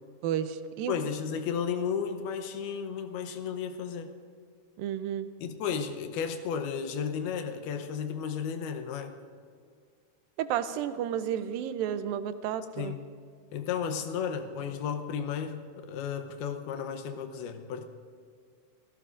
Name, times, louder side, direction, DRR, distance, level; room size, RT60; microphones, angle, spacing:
voice 1, 0.2-1.0 4.8-5.3 10.4-13.0, right 9 dB, 80° right, 11 dB, 2.3 m, -32 dB
voice 2, 0.9-4.2 5.4-9.2 12.8-13.0 13.5-17.8, left 7 dB, 85° left, 7 dB, 2.9 m, -33 dB
26.5 x 16.0 x 2.5 m, 2.1 s
omnidirectional pair, 4.3 m